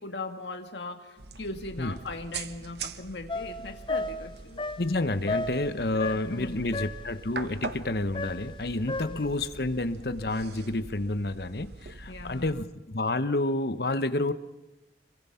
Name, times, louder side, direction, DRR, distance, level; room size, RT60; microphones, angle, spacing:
voice 1, 0.0-4.6 5.7-6.8 9.0-9.3 12.1-12.7, left 2 dB, 80° left, 6 dB, 1.8 m, -40 dB
sound 1, 1.2-12.6, right 4 dB, 65° right, 1.1 m, -43 dB
sound 2, 3.3-6.5 6.7-7.2 8.1-9.4, left 2 dB, 25° left, 0.8 m, -34 dB
voice 2, 4.8-14.3, left 2 dB, 60° left, 12 dB, 1.0 m, -29 dB
26.5 x 23.0 x 5.8 m, 1.0 s
head